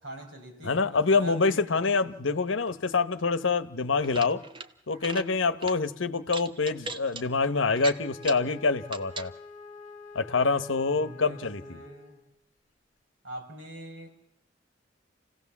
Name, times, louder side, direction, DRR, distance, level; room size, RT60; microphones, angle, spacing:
voice 1, 0.0-1.7 10.9-12.2 13.2-14.1, right 1 dB, 70° right, 5.1 m, -43 dB
voice 2, 0.6-4.4 4.9-9.3 10.1-11.6, left 4 dB, 80° left, 1.0 m, -26 dB
sound 1, 3.9-4.7 5.0-5.3 5.6-5.8 6.3-7.2 7.8-8.5 8.9-9.3, right 3 dB, 25° right, 1.0 m, -38 dB
Wind instrument woodwind instrument, 7.8-12.4, left 4 dB, 40° left, 0.9 m, -47 dB
28.0 x 16.5 x 7.2 m
head